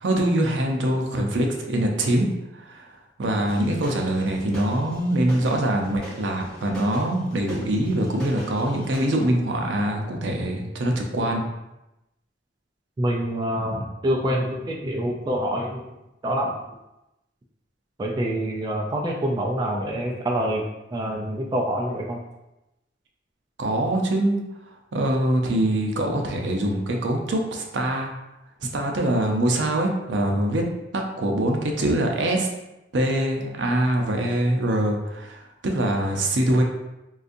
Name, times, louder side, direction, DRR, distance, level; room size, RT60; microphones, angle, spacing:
voice 1, 0.0-2.3 2.5-11.4 23.6-24.4 24.9-28.1 28.7-30.6 30.9-32.5 32.9-36.6, right 1 dB, 70° right, 2 dB, 0.5 m, -24 dB
sound 1, 3.4-9.2, right 1 dB, 5° left, 1.4 m, -40 dB
voice 2, 13.0-15.9 16.2-16.5 18.0-22.2, right 1 dB, 25° right, -1 dB, 0.3 m, -26 dB
3.9 x 2.5 x 2.5 m, 0.94 s
head